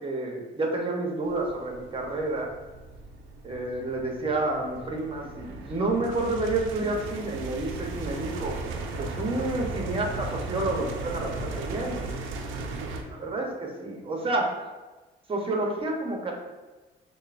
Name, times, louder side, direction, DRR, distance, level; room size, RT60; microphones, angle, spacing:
voice 1, 0.0-2.5 3.4-8.6 9.0-12.1 13.1-14.5 15.3-16.3, right 2 dB, 25° right, 1 dB, 0.8 m, -29 dB
sound 1, 1.3-13.0, right 3 dB, 85° right, 0.5 m, -36 dB
6.3 x 2.2 x 2.5 m, 1.2 s
cardioid pair, 90°, 20 cm